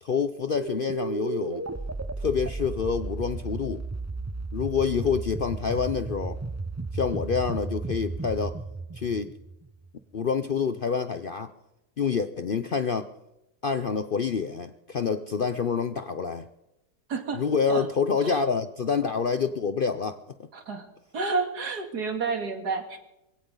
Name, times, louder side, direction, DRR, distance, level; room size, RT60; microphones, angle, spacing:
voice 1, 0.0-1.6 2.2-3.8 4.5-6.4 6.9-8.6 8.9-9.3 10.1-11.5 12.0-13.1 13.6-16.5 17.3-20.2, left 6 dB, 55° left, 10 dB, 0.6 m, -27 dB
sound 1, 0.5-9.9, right 3 dB, 25° right, 0.3 m, -34 dB
voice 2, 17.1-17.4 17.7-17.8 18.2-18.4 20.5-20.9 21.1-23.0, right 4 dB, 80° right, 5 dB, 2.6 m, -30 dB
22.5 x 16.0 x 3.9 m, 0.90 s
omnidirectional pair, 1.7 m